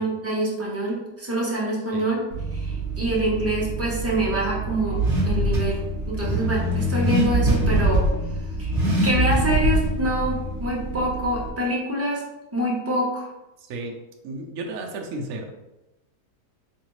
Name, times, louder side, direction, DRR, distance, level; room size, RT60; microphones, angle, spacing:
voice 1, 0.0-2.2 2.5-5.8 6.1-8.0 8.6-8.8 9.0-12.2 12.5-13.3, right 1 dB, 15° right, -5 dB, 0.6 m, -26 dB
Car / Accelerating revving vroom, 2.3-11.5, right 1 dB, 40° right, 1.2 m, -24 dB
voice 2, 13.6-13.9 14.2-15.5, right 2 dB, 65° right, 1 dB, 0.9 m, -33 dB
3.6 x 3.3 x 3.1 m, 0.97 s
omnidirectional pair, 1.7 m